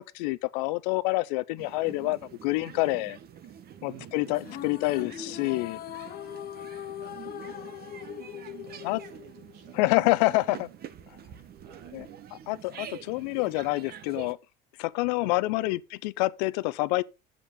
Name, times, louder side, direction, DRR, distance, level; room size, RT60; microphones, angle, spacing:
voice 1, 0.2-3.2 3.8-5.8 8.8-9.0 9.8-10.7 11.9-12.1 12.5-14.4 14.8-17.0, left 20 dB, 85° left, 0.6 m, -27 dB
sound 1, 1.6-14.3, right 9 dB, 50° right, 1.1 m, -46 dB
voice 2, 3.9-4.8 7.0-7.8 8.4-10.0 10.5-10.8 11.3-12.3 15.2-15.8, right 8 dB, 85° right, 2.5 m, -53 dB
sound 2, 4.3-9.8, left 12 dB, 45° left, 0.8 m, -41 dB
9.0 x 7.7 x 3.8 m
supercardioid pair, 90°, 21 cm